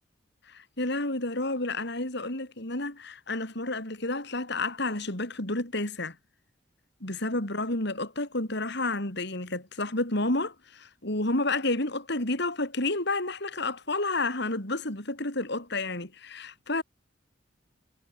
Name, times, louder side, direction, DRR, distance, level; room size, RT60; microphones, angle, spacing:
voice 1, 0.5-6.2 7.0-16.8, left 2 dB, 60° left, 5.6 m, -30 dB
head